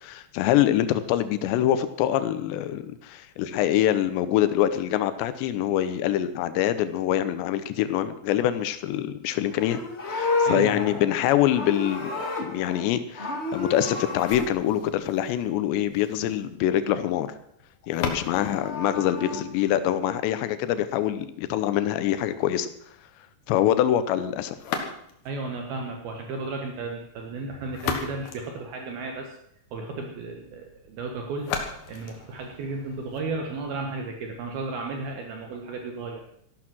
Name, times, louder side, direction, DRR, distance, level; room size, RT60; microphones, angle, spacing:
voice 1, 0.0-9.8 10.1-12.1 12.4-17.3 17.9-22.7 23.5-24.6, left 11 dB, 80° left, 12 dB, 3.0 m, -25 dB
Livestock farm animals working animals, 9.4-12.9 13.1-14.5 18.2-19.4, left 3 dB, 30° left, 1.1 m, -31 dB
voice 2, 10.4-10.9 18.4-18.5 25.2-29.3 29.7-31.5 31.9-36.2, right 3 dB, 65° right, 2 dB, 3.0 m, -34 dB
sound 1, 14.2-20.2 24.6-25.4 27.4-29.4 31.4-33.4, left 6 dB, 65° left, 3.1 m, -37 dB
14.5 x 12.0 x 6.2 m, 0.71 s
omnidirectional pair, 5.1 m